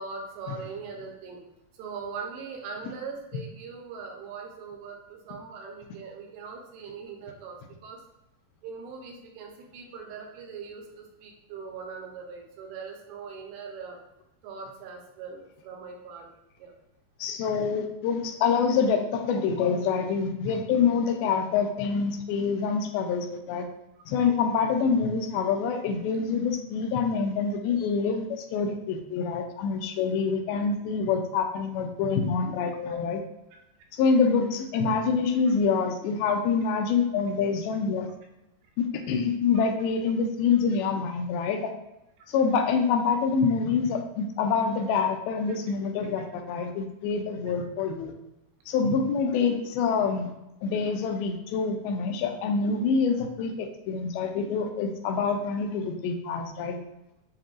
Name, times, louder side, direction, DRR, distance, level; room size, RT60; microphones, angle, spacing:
voice 1, 0.0-1.4 1.7-8.0 8.6-14.0 14.4-16.3 16.6-16.7 39.6-39.7 42.2-42.3 45.5-45.6, right 5 dB, 80° right, 1 dB, 2.7 m, -41 dB
voice 2, 17.2-23.7 24.1-33.2 33.9-38.1 38.8-41.7 42.3-48.1 48.7-50.3 50.6-56.8, left 5 dB, 85° left, 4 dB, 2.3 m, -26 dB
7.4 x 2.6 x 2.4 m, 0.91 s
omnidirectional pair, 4.4 m